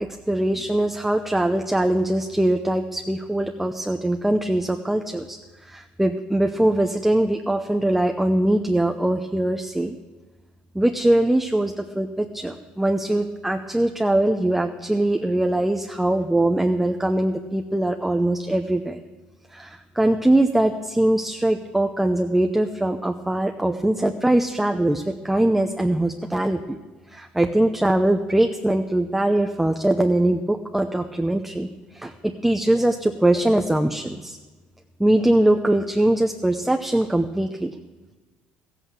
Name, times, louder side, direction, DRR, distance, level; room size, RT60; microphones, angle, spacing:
voice 1, 0.0-9.9 10.7-19.0 19.5-26.8 27.1-34.4 35.0-37.7, right 1 dB, 5° right, 5 dB, 0.7 m, -22 dB
14.5 x 8.1 x 7.6 m, 1.2 s
supercardioid pair, 90°, 4 cm